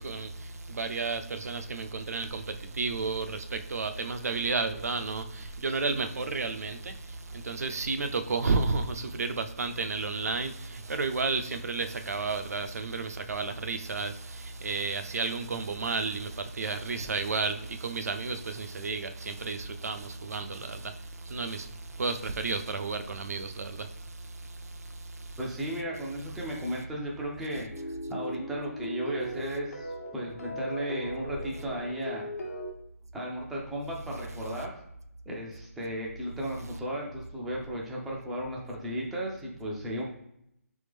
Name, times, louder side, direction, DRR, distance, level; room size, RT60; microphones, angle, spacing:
voice 1, 0.0-25.4, right 4 dB, 75° right, 0.5 m, -32 dB
voice 2, 25.4-32.3 33.1-34.7 35.3-40.0, equal, ahead, 0.4 m, -35 dB
sound 1, 27.7-32.7, equal, 75° left, 1.1 m, -38 dB
3.5 x 3.4 x 3.4 m
hypercardioid pair, 170°, 8 cm